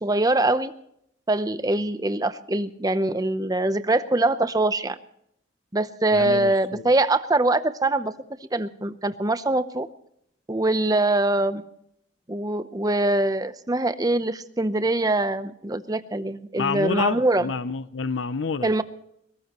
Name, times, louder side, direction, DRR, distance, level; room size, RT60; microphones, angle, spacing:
voice 1, 0.0-0.7 1.3-5.0 5.7-8.1 8.5-9.9 10.5-11.6 12.3-17.5 18.6-18.8, right 2 dB, 20° right, 12 dB, 0.8 m, -23 dB
voice 2, 6.1-6.9 16.5-18.7, left 5 dB, 85° left, 14 dB, 0.6 m, -28 dB
21.5 x 18.0 x 3.0 m, 0.72 s
head